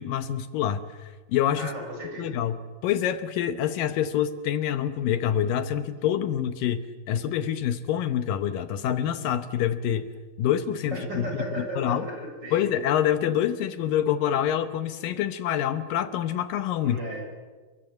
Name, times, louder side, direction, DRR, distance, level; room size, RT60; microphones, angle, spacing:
voice 1, 0.0-1.7 2.2-2.6 2.8-6.8 7.1-10.1 10.4-12.1 12.5-17.0, left 10 dB, 75° left, 10 dB, 2.6 m, -26 dB
voice 2, 1.6-2.4 10.9-12.6 16.8-17.3, right 1 dB, 30° right, 1 dB, 7.4 m, -35 dB
29.0 x 24.5 x 7.8 m, 1.3 s
omnidirectional pair, 4.0 m